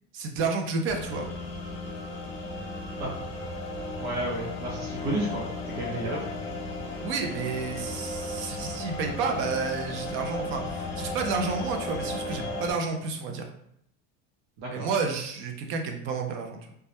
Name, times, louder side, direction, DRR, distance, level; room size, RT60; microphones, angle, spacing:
voice 1, 0.1-1.3 7.0-13.5 14.7-16.7, right 4 dB, 45° right, 3 dB, 0.4 m, -30 dB
sound 1, 0.9-12.7, left 2 dB, 40° left, 0.5 m, -35 dB
voice 2, 4.0-6.3 14.6-14.9, right 1 dB, 80° right, -4 dB, 0.8 m, -32 dB
2.2 x 2.1 x 2.8 m, 0.73 s
cardioid pair, 150°, 29 cm